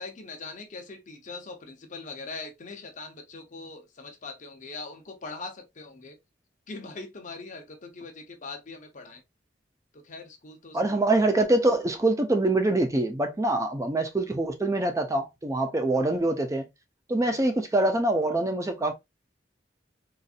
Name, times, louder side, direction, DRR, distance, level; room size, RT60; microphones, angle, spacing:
voice 1, 0.0-6.2 6.7-9.2 9.9-11.0 17.2-17.5, left 3 dB, 45° left, 0.8 m, -41 dB
voice 2, 10.7-16.7 17.1-18.9, right 2 dB, 15° right, 0.5 m, -24 dB
4.0 x 2.5 x 2.4 m
head